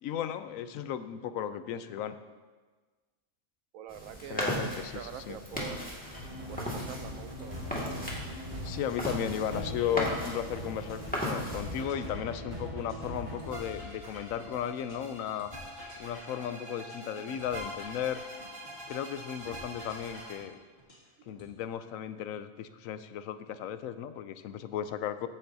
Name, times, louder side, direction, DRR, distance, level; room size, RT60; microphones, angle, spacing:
voice 1, 0.0-2.2 4.3-5.4 8.6-15.5 16.0-18.2 18.9-20.6 21.3-25.3, left 9 dB, 80° left, 11 dB, 1.0 m, -35 dB
voice 2, 3.7-5.9 6.5-7.7 17.2-17.3 19.5-19.6 21.2-21.3, right 10 dB, 75° right, 11 dB, 1.0 m, -44 dB
sound 1, 3.9-11.8, equal, 5° left, 1.8 m, -37 dB
sound 2, 5.5-7.1 7.4-11.1 11.4-15.1 15.4-19.1 19.4-21.5, left 1 dB, 45° left, 2.3 m, -51 dB
sound 3, 6.1-20.3, equal, 25° right, 2.0 m, -42 dB
14.5 x 9.3 x 2.7 m, 1.4 s
omnidirectional pair, 1.4 m